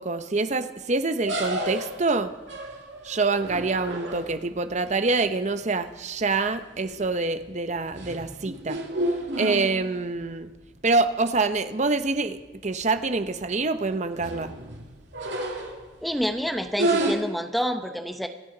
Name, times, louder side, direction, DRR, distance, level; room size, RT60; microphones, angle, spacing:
voice 1, 0.0-2.3 3.0-8.8 9.4-10.5 10.8-14.5, right 3 dB, 40° right, 10 dB, 0.8 m, -26 dB
sound 1, 1.2-4.6 6.2-6.5 6.9-7.3 7.7-10.2 10.6-10.7 11.0-11.1 12.0-12.1 12.4-12.5 12.9-13.3 13.8-16.0 16.7-17.1, right 1 dB, 75° right, 2.4 m, -31 dB
voice 2, 16.0-18.3, equal, ahead, 6 dB, 0.8 m, -28 dB
26.0 x 9.4 x 3.9 m, 1.2 s
head